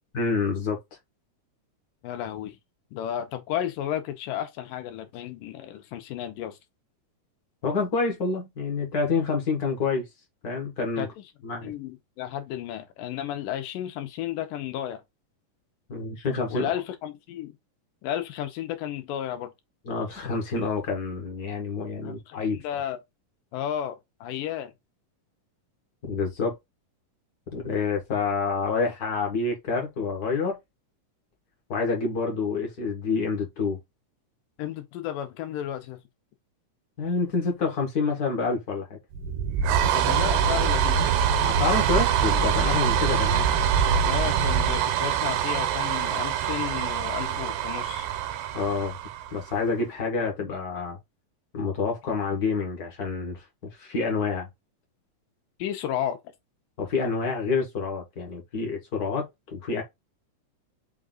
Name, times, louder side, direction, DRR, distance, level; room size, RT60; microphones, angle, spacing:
voice 1, 0.1-0.8 7.6-10.1 10.4-11.1 11.4-11.7 15.9-16.7 19.8-22.6 26.0-26.6 27.5-30.6 31.7-33.8 37.0-38.8 41.4-43.5 48.5-49.0 49.3-51.0 51.5-53.4 53.7-54.5 56.8-59.8, left 4 dB, 65° left, 0.9 m, -28 dB
voice 2, 2.0-2.6 2.9-6.6 11.0-11.2 11.6-15.0 16.5-17.5 18.0-19.5 22.0-23.0 23.5-24.7 34.6-36.0 39.9-41.2 44.1-48.1 55.6-56.2, left 11 dB, 85° left, 2.4 m, -33 dB
sound 1, 39.1-49.6, right 8 dB, 85° right, 2.4 m, -24 dB
5.7 x 2.5 x 3.7 m
omnidirectional pair, 3.8 m